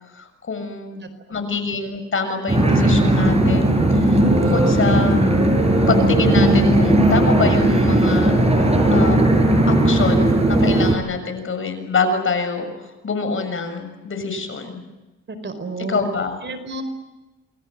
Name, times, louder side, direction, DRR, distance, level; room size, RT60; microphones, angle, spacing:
voice 1, 0.1-1.0 1.3-5.3 5.9-9.4 9.7-14.8 15.9-16.4, left 4 dB, 45° left, 8 dB, 6.8 m, -26 dB
voice 2, 1.0-1.4 15.3-16.0 16.4-16.8, right 3 dB, 40° right, 10 dB, 4.9 m, -31 dB
sound 1, 2.5-11.0, right 1 dB, 20° right, 7.7 m, -16 dB
29.0 x 22.0 x 7.7 m, 1.1 s
cardioid pair, 90°, 30 cm